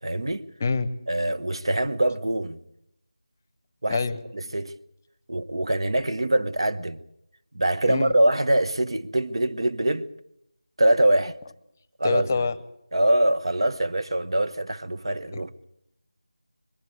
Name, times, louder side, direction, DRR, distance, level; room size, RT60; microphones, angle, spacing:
voice 1, 0.0-0.5 1.1-2.6 3.8-4.0 4.3-4.7 5.3-7.0 7.5-10.1 10.8-11.4 12.0-12.5 12.9-15.6, right 1 dB, 60° right, 1.1 m, -24 dB
voice 2, 12.0-12.5 15.3-15.4, left 4 dB, 25° left, 0.8 m, -25 dB
21.0 x 13.5 x 9.7 m
figure-of-eight pair, 165°, 3 cm